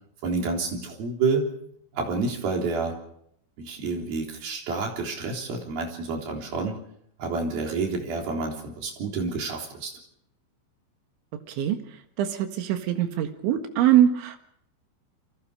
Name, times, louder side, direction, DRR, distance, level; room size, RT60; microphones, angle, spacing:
voice 1, 0.2-1.5 1.9-3.0 3.6-6.8 7.2-9.9, right 4 dB, 55° right, 1 dB, 5.2 m, -29 dB
voice 2, 12.6-14.4, right 11 dB, 85° right, 6 dB, 4.1 m, -22 dB
30.0 x 23.5 x 5.0 m, 0.71 s
omnidirectional pair, 5.3 m